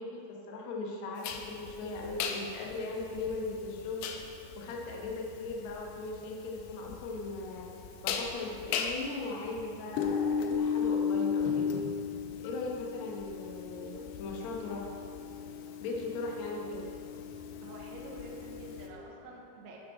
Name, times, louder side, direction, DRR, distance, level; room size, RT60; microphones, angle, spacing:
voice 1, 0.0-4.0 4.6-7.7 8.0-11.7 12.4-14.9 15.8-16.8, left 3 dB, 70° left, -1 dB, 1.7 m, -38 dB
sound 1, 1.2-18.9, left 6 dB, 85° left, 2.7 m, -36 dB
voice 2, 17.6-19.8, right 2 dB, 90° right, -1 dB, 2.9 m, -47 dB
9.1 x 7.7 x 4.2 m, 2.6 s
omnidirectional pair, 4.6 m